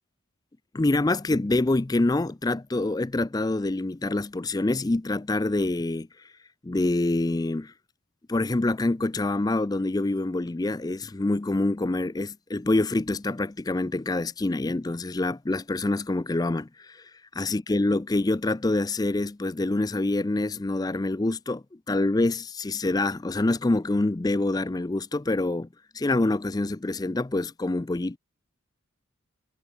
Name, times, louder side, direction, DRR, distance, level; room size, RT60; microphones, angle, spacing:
voice 1, 0.7-6.3 6.6-7.7 8.3-17.1 17.4-25.7 25.9-28.2, left 2 dB, 15° left, 0.4 m, -26 dB
head